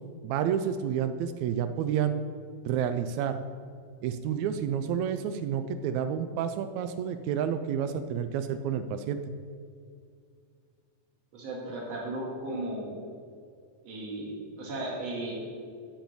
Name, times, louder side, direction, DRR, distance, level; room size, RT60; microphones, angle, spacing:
voice 1, 0.2-2.2 2.6-3.4 4.0-9.2, right 8 dB, 85° right, 9 dB, 1.6 m, -29 dB
voice 2, 11.3-13.0 13.8-15.3, right 1 dB, 50° right, -2 dB, 3.2 m, -35 dB
11.0 x 6.0 x 8.5 m, 2.3 s
omnidirectional pair, 3.8 m